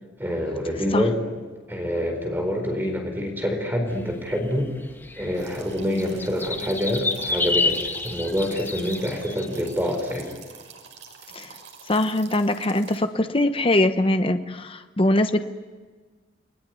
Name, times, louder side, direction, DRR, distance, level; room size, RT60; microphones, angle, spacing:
voice 1, 0.2-1.2 1.7-4.7 5.2-7.8 8.0-10.3, equal, 10° right, 3 dB, 4.3 m, -26 dB
sound 1, 4.0-9.6, left 3 dB, 10° left, 2.0 m, -28 dB
sound 2, 5.3-13.0, right 6 dB, 80° right, 6.0 m, -46 dB
voice 2, 11.9-15.4, left 1 dB, 30° left, 9 dB, 1.0 m, -22 dB
29.5 x 21.0 x 9.5 m, 1.4 s
head